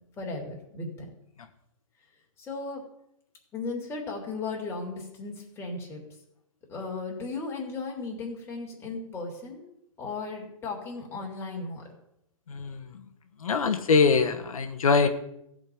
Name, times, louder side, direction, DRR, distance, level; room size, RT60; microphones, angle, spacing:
voice 1, 0.2-0.9 2.4-2.8 3.5-6.0 6.7-9.7 10.0-11.8, left 3 dB, 15° left, -1 dB, 3.3 m, -36 dB
voice 2, 12.5-12.9 13.4-15.1, left 5 dB, 85° left, 6 dB, 1.4 m, -23 dB
15.0 x 5.3 x 9.3 m, 0.78 s
hypercardioid pair, 145°, 18 cm